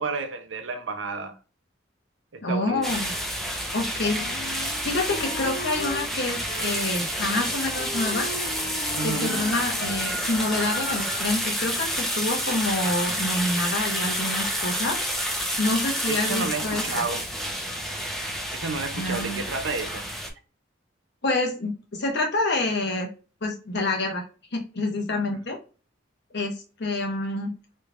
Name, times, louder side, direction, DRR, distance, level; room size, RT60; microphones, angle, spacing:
voice 1, 0.0-1.4 2.3-2.8 8.9-9.4 16.1-17.3 18.5-20.1 25.3-25.4, right 4 dB, 70° right, 0.6 m, -31 dB
voice 2, 2.4-3.1 3.7-4.2 4.8-8.3 9.0-15.0 15.6-17.0 18.9-19.4 21.2-23.1 23.4-24.2 24.5-25.6 26.3-26.5 26.8-27.5, left 2 dB, 60° left, 1.1 m, -27 dB
sound 1, 2.8-20.3, equal, ahead, 0.7 m, -29 dB
Wind instrument woodwind instrument, 4.0-6.1 6.5-7.5 7.8-10.0, left 2 dB, 40° left, 0.5 m, -38 dB
3.3 x 3.2 x 2.3 m
head